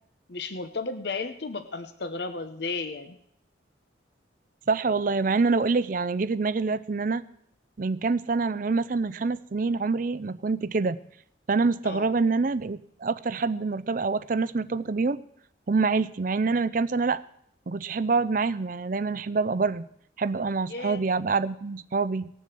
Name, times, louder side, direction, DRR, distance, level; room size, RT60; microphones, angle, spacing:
voice 1, 0.3-3.2 11.8-12.1 20.7-21.0, left 3 dB, 60° left, 10 dB, 0.9 m, -34 dB
voice 2, 4.7-7.2 7.8-11.0 11.5-15.2 15.7-17.2 17.7-19.8 20.2-22.3, right 4 dB, 45° right, 15 dB, 0.5 m, -26 dB
18.5 x 7.3 x 7.6 m, 0.69 s
head